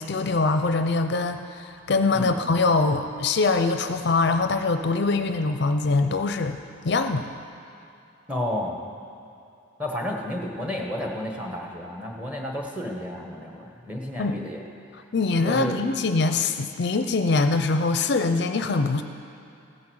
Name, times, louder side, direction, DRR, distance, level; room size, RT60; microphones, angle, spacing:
voice 1, 0.0-6.6 6.8-7.3 14.2-14.4 15.1-19.0, left 3 dB, 55° left, 8 dB, 0.5 m, -23 dB
voice 2, 8.3-8.8 9.8-14.6 15.4-15.8, left 1 dB, 5° right, 1 dB, 1.2 m, -31 dB
16.0 x 9.7 x 6.3 m, 2.7 s
head